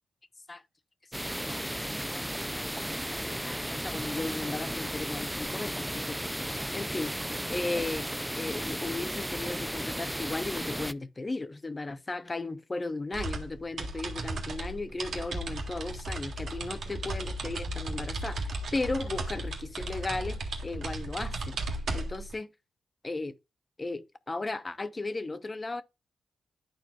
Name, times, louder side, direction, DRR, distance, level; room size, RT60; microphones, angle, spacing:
sound 1, 1.1-10.9, equal, 5° right, 0.4 m, -34 dB
voice 1, 1.4-1.8 2.1-2.2 2.5-2.6 3.1-6.5 6.7-7.1 7.5-8.1 8.3-21.6 21.9-22.5 23.0-23.3 23.8-25.8, left 2 dB, 30° left, 0.8 m, -36 dB
sound 2, 13.1-22.3, right 2 dB, 70° right, 1.7 m, -35 dB
11.5 x 4.5 x 2.3 m
cardioid pair, 85°, 0 cm